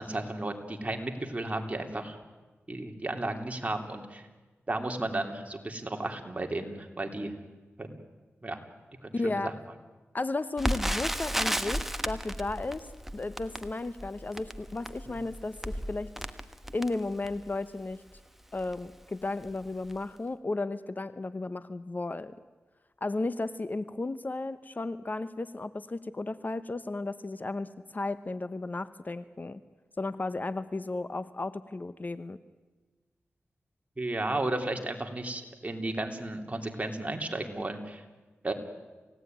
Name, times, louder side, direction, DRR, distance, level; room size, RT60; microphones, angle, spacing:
voice 1, 0.0-2.2 2.7-4.2 4.7-7.4 7.8-8.0 8.4-8.6 9.0-9.5 15.1-15.2 34.0-38.0 38.4-38.5, right 2 dB, 30° right, 4 dB, 3.2 m, -34 dB
voice 2, 9.1-9.5 10.1-12.9 13.1-16.1 16.7-18.0 18.5-22.3 23.0-29.6 30.0-32.4, left 2 dB, 40° left, 13 dB, 0.9 m, -34 dB
Crackle, 10.6-17.5 18.2-18.3 18.6-18.8 19.4-19.6 19.9-20.0, equal, 5° right, 1.3 m, -34 dB
28.5 x 17.0 x 9.3 m, 1.3 s
wide cardioid pair, 65°, 5 cm